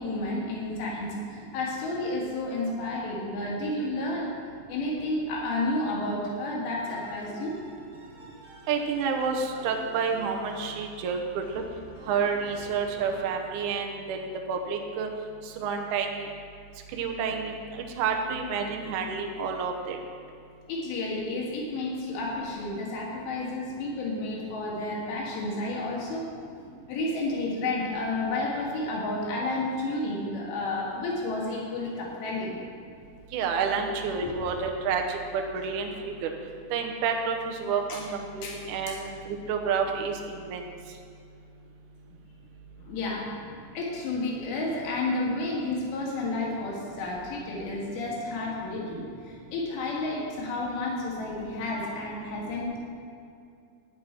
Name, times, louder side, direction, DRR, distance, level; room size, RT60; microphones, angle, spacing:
voice 1, 0.0-7.6 20.7-26.3 26.9-32.6 34.2-34.4 37.9-38.0 38.4-38.6 38.9-39.0 42.9-43.4 43.7-52.9, left 2 dB, 75° left, -3 dB, 4.0 m, -31 dB
sound 1, 6.8-13.2, right 1 dB, 25° right, 1.7 m, -49 dB
voice 2, 8.7-11.6 12.1-15.1 15.6-16.3 16.9-17.5 18.0-20.0 33.3-35.2 35.5-36.3 36.7-40.2 40.4-40.6, right 5 dB, 85° right, 3 dB, 1.7 m, -29 dB
12.5 x 9.8 x 4.5 m, 2.4 s
omnidirectional pair, 5.0 m